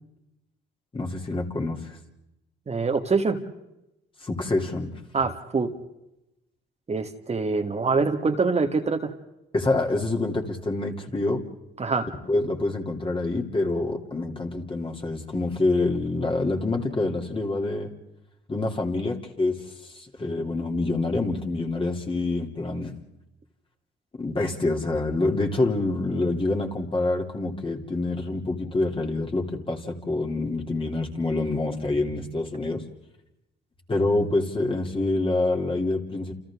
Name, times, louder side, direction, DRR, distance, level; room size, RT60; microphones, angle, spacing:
voice 1, 0.9-2.0 4.2-4.9 9.5-11.4 12.3-17.9 18.5-22.9 24.2-32.8 33.9-36.3, left 2 dB, 25° left, 1 dB, 3.2 m, -26 dB
voice 2, 2.7-3.4 5.1-5.7 6.9-9.1 11.8-12.1, right 4 dB, 35° right, 4 dB, 1.9 m, -24 dB
30.0 x 28.5 x 3.7 m, 0.90 s
cardioid pair, 90°, 20 cm